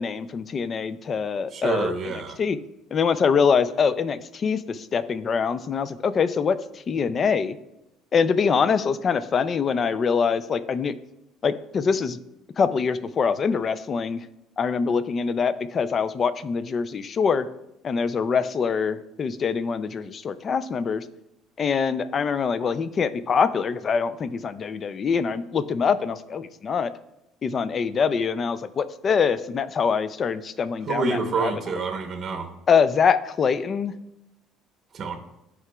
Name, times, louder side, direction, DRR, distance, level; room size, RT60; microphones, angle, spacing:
voice 1, 0.0-1.9 2.4-2.6 2.9-7.6 8.1-10.9 11.4-12.2 12.6-14.3 14.6-17.5 17.8-21.0 21.6-26.9 27.4-31.5 32.7-33.9, left 6 dB, 30° left, 14 dB, 0.3 m, -24 dB
voice 2, 1.5-2.4 30.9-32.5 34.9-35.2, right 4 dB, 30° right, 4 dB, 0.8 m, -27 dB
12.5 x 4.9 x 2.3 m, 0.88 s
cardioid pair, 155°, 0 cm